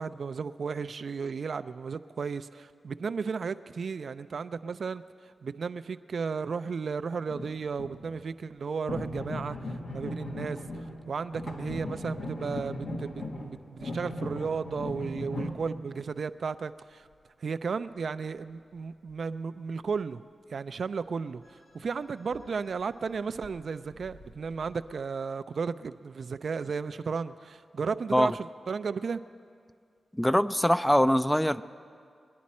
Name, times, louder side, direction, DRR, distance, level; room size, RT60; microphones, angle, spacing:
voice 1, 0.0-5.0 5.4-17.1 17.4-20.2 20.5-29.2, right 5 dB, 70° right, 12 dB, 0.3 m, -34 dB
sound 1, 7.3-8.1 8.9-11.0 11.3-15.6 21.8-21.9 22.3-22.4 22.8-22.9 23.3-23.5 23.9-24.9, left 1 dB, 75° left, 1.4 m, -37 dB
voice 2, 30.1-31.6, equal, 10° left, 13 dB, 0.4 m, -23 dB
21.0 x 10.5 x 4.3 m, 2.2 s
cardioid pair, 45°, 0 cm